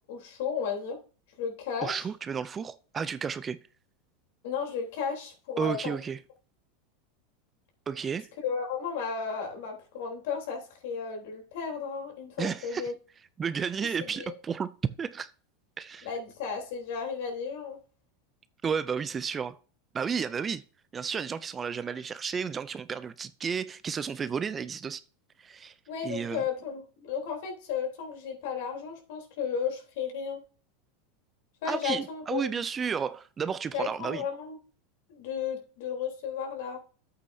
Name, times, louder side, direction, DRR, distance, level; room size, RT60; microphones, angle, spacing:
voice 1, 0.1-1.0 1.4-2.0 4.4-6.0 8.4-12.9 14.0-14.4 16.0-17.8 25.9-30.4 31.6-32.5 33.7-34.6 35.1-36.8, left 6 dB, 70° left, 3.5 m, -34 dB
voice 2, 1.8-3.6 5.6-6.2 7.9-8.3 12.4-12.9 13.4-14.7 15.0-15.3 15.8-16.1 18.6-19.6 19.9-20.6 20.9-25.0 25.4-25.7 26.0-26.4 31.7-34.2, right 6 dB, 25° right, 0.4 m, -32 dB
9.6 x 8.3 x 2.7 m
supercardioid pair, 120°, 0 cm